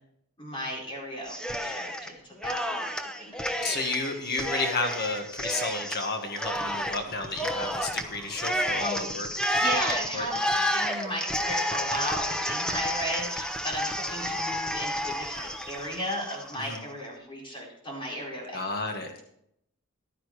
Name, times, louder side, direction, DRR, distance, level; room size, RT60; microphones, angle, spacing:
voice 1, 0.4-3.7 8.8-18.6 19.0-19.2, equal, 25° left, -3 dB, 4.5 m, -36 dB
Cheering, 1.3-2.1 2.4-16.8, equal, 5° left, 0.9 m, -31 dB
voice 2, 3.6-9.3 10.1-10.3 16.7-16.8 18.5-19.1, left 3 dB, 50° left, 4 dB, 1.6 m, -32 dB
14.5 x 11.5 x 3.2 m, 0.74 s
head